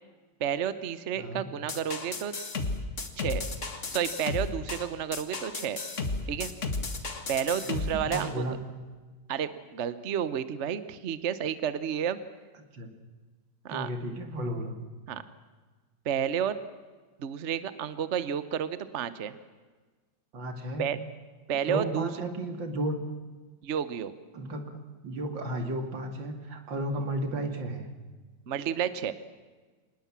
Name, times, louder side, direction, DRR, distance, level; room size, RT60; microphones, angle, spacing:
voice 1, 0.4-2.3 3.2-3.5 3.9-5.8 6.3-6.5 7.3-8.4 9.3-12.2 13.6-13.9 15.1-15.2 16.0-16.6 17.2-19.3 20.8-21.0 21.5-22.1 23.6-24.1 28.5-29.1, right 8 dB, 45° right, 14 dB, 1.1 m, -31 dB
sound 1, 1.7-8.3, left 3 dB, 40° left, 2.2 m, -33 dB
voice 2, 7.6-8.6 12.7-12.9 13.7-14.7 20.3-20.9 21.7-23.0 24.3-24.7 25.0-27.9, right 1 dB, 85° right, 6 dB, 3.2 m, -33 dB
25.5 x 19.5 x 7.4 m, 1.3 s
omnidirectional pair, 2.0 m